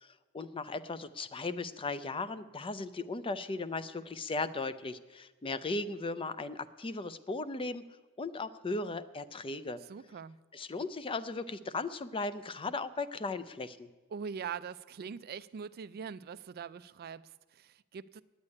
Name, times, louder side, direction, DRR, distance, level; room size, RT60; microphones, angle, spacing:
voice 1, 0.0-7.8 8.2-9.8 10.5-13.9, left 3 dB, 25° left, 13 dB, 0.4 m, -37 dB
voice 2, 9.9-10.4 14.1-18.2, right 6 dB, 45° right, 15 dB, 0.4 m, -42 dB
9.7 x 8.1 x 9.7 m, 1.2 s
head